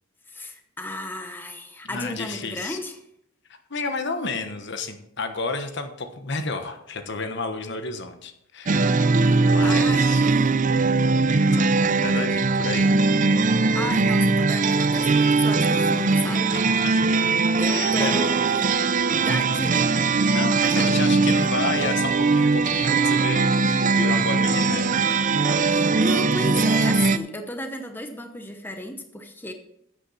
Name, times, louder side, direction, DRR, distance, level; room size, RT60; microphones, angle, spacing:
voice 1, 0.3-3.0 9.2-10.5 13.7-16.5 17.6-18.7 19.2-19.9 20.6-21.0 25.7-29.5, left 1 dB, 10° left, 5 dB, 0.9 m, -34 dB
voice 2, 1.9-2.8 3.7-10.2 11.3-12.9 16.5-17.2 17.7-18.1 18.5-18.6 19.5-19.6 20.3-25.1, left 3 dB, 60° left, 7 dB, 1.1 m, -31 dB
sound 1, 8.7-27.2, right 3 dB, 40° right, 0.5 m, -20 dB
12.5 x 8.6 x 4.2 m, 0.76 s
head